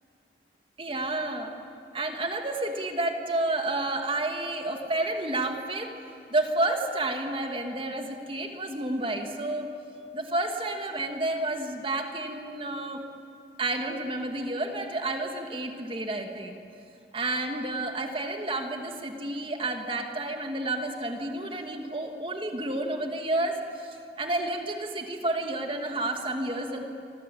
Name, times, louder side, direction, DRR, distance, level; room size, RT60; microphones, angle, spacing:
voice 1, 0.8-1.5 1.9-5.9 6.3-9.7 10.1-13.0 13.6-16.6 17.1-26.8, right 2 dB, 30° right, 4 dB, 2.2 m, -30 dB
27.5 x 25.0 x 8.6 m, 2.5 s
head